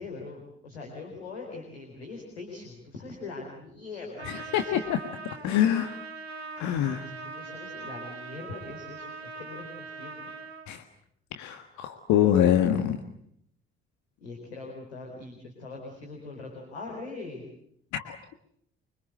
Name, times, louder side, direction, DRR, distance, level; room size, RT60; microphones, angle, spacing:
voice 1, 0.0-4.8 7.0-10.4 14.2-17.5, left 3 dB, 85° left, 0 dB, 4.2 m, -42 dB
Trumpet, 4.2-10.7, right 4 dB, 90° right, 1.5 m, -41 dB
voice 2, 4.3-5.0 5.4-6.0 6.6-7.1 10.7-10.8 11.4-13.0 17.9-18.2, left 10 dB, 65° left, 7 dB, 1.7 m, -25 dB
25.5 x 25.5 x 7.9 m, 0.71 s
figure-of-eight pair, 40°, 31 cm